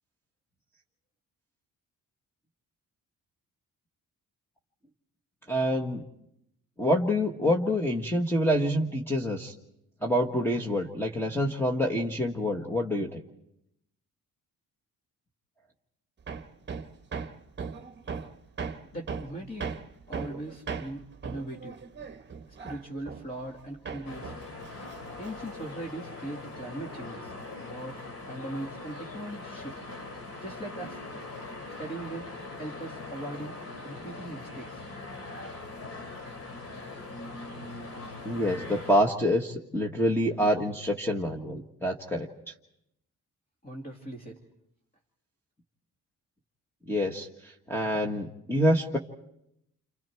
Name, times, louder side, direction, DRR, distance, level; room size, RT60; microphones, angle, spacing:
voice 1, 5.5-6.0 6.8-9.5 10.0-13.2 38.2-42.3 46.9-47.3 47.7-49.0, equal, 5° left, 1 dB, 1.5 m, -26 dB
Hammer, 16.3-23.6 23.8-25.6, right 5 dB, 30° right, 1.2 m, -38 dB
voice 2, 18.9-19.7 20.1-21.8 22.6-24.3 25.2-29.8 30.4-31.0 31.8-32.3 32.6-33.6 33.8-34.8 43.6-44.4, right 1 dB, 25° left, 0 dB, 2.3 m, -40 dB
sound 1, 24.0-39.0, left 2 dB, 45° left, 2.8 m, -41 dB
29.5 x 28.0 x 4.6 m, 0.79 s
cardioid pair, 140°, 34 cm